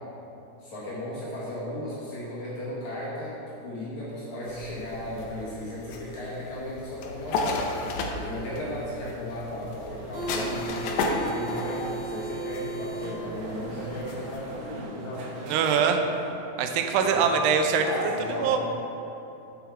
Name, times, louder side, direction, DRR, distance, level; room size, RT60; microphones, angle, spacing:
voice 1, 0.6-15.2 16.9-17.2 17.8-18.5, left 1 dB, 60° left, -8 dB, 2.2 m, -35 dB
sound 1, 4.5-14.6, left 3 dB, 80° left, 2.1 m, -34 dB
sound 2, 9.9-16.3, right 3 dB, 65° right, 2.9 m, -37 dB
voice 2, 15.5-16.0 16.6-17.8 18.4-18.6, right 6 dB, 85° right, 5 dB, 2.7 m, -22 dB
7.5 x 7.0 x 4.5 m, 2.9 s
omnidirectional pair, 4.8 m